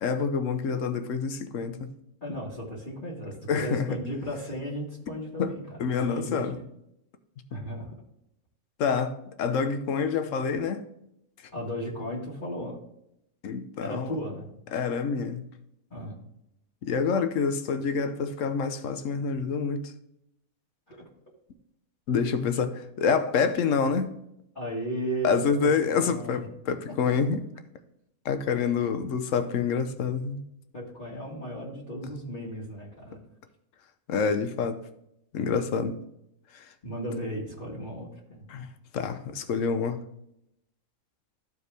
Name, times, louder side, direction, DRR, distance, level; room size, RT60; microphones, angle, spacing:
voice 1, 0.0-1.9 3.5-4.0 5.4-5.5 5.8-6.6 8.8-10.9 13.4-14.2 14.7-15.4 16.8-19.9 22.1-24.1 25.2-27.4 28.2-30.4 34.1-34.8 35.3-36.0 36.5-36.7 38.5-40.0, left 5 dB, 65° left, 1.1 m, -27 dB
voice 2, 2.2-6.7 7.5-8.0 11.5-12.8 13.8-14.4 15.9-16.2 20.9-21.0 24.5-26.4 30.7-33.2 36.8-38.5, equal, 35° left, 1.8 m, -35 dB
13.5 x 4.7 x 3.4 m
omnidirectional pair, 1.5 m